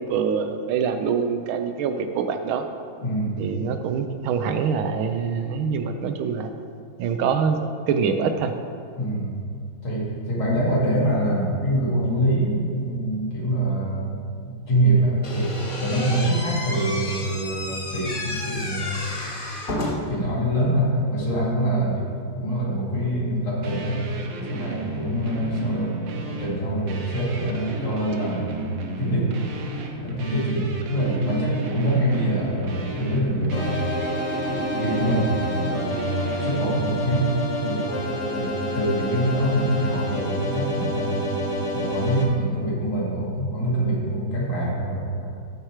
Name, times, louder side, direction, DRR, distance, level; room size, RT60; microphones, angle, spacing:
voice 1, 0.0-2.7 3.4-6.5 7.0-7.6 7.9-8.5, right 6 dB, 90° right, 7 dB, 1.5 m, -25 dB
voice 2, 3.0-3.6 9.0-9.3 9.8-14.1 14.4-15.5 15.8-19.0 20.1-22.1 22.3-24.0 24.5-26.0 26.3-28.7 29.0-29.3 30.0-33.9 34.4-35.3 35.6-37.3 37.6-37.9 38.3-41.3 41.7-45.3, right 1 dB, 85° left, -6 dB, 3.1 m, -25 dB
Slam / Squeak, 15.2-20.2, left 1 dB, 30° left, 1.1 m, -31 dB
sound 1, 23.6-36.7, right 3 dB, 70° right, 1.5 m, -35 dB
sound 2, 33.5-42.2, equal, 60° left, 1.6 m, -28 dB
13.0 x 4.4 x 4.9 m, 2.2 s
omnidirectional pair, 2.2 m